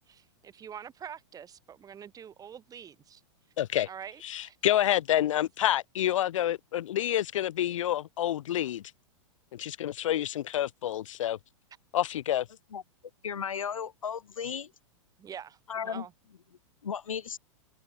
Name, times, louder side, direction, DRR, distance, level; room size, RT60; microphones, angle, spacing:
voice 1, 0.1-3.2 3.9-4.6 15.2-15.6 15.8-16.1, right 8 dB, 20° right, 2.4 m, -45 dB
voice 2, 3.6-3.9 4.2-8.8 9.5-11.4 11.9-12.5, left 12 dB, 75° left, 0.6 m, -28 dB
voice 3, 13.2-14.7 15.7-16.0 16.8-17.4, left 7 dB, 90° left, 1.3 m, -35 dB
hypercardioid pair, 115°, 17 cm